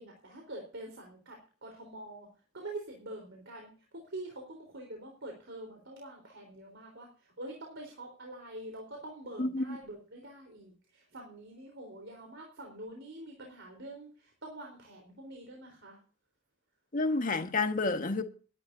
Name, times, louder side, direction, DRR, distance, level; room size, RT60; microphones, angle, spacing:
voice 1, 0.0-2.3 2.5-16.0, right 1 dB, 65° right, 4.0 m, -46 dB
voice 2, 9.4-9.8 16.9-18.2, left 3 dB, 45° left, 1.4 m, -29 dB
21.5 x 11.5 x 2.7 m
head